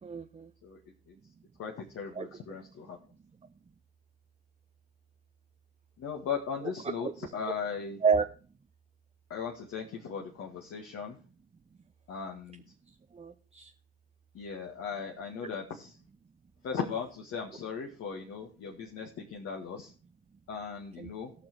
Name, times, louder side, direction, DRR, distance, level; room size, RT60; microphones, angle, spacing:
voice 1, 0.0-0.5 2.2-2.3 6.6-6.7 7.0-7.3 8.0-8.2 13.1-13.7 15.4-15.5 21.0-21.1, right 6 dB, 20° right, 7 dB, 0.9 m, -30 dB
voice 2, 1.6-3.0 6.0-8.0 9.3-11.2 12.1-12.6 14.3-16.0 16.6-19.9 20.5-21.3, left 6 dB, 45° left, 0 dB, 2.0 m, -38 dB
18.0 x 6.0 x 4.7 m, 0.37 s
hypercardioid pair, 65°, 32 cm